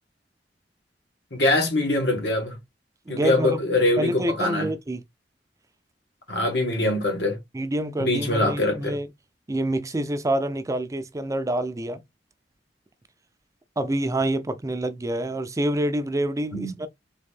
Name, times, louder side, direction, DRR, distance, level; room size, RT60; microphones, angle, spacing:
voice 1, 1.3-2.6 3.1-4.7 6.3-7.4 8.0-9.0 16.5-16.7, left 1 dB, 70° left, 1.7 m, -23 dB
voice 2, 3.1-3.6 4.0-5.0 7.5-9.1 9.5-12.0 13.8-16.9, right 1 dB, 20° right, 0.4 m, -27 dB
3.8 x 3.5 x 3.6 m
head